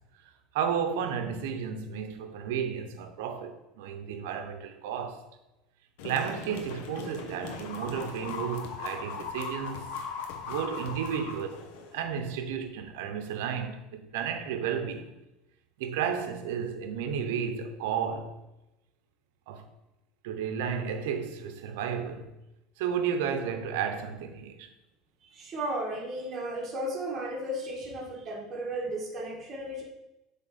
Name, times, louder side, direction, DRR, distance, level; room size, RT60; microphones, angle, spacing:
voice 1, 0.5-5.2 6.0-9.8 10.4-11.6 11.9-15.1 15.8-18.4 19.5-19.7 20.2-22.3 22.8-24.7, right 7 dB, 85° right, 0.8 m, -32 dB
sound 1, 6.0-12.0, left 5 dB, 80° left, 0.8 m, -39 dB
voice 2, 25.3-29.8, right 1 dB, 30° right, 1.5 m, -34 dB
7.3 x 3.7 x 4.2 m
supercardioid pair, 120°, 0 cm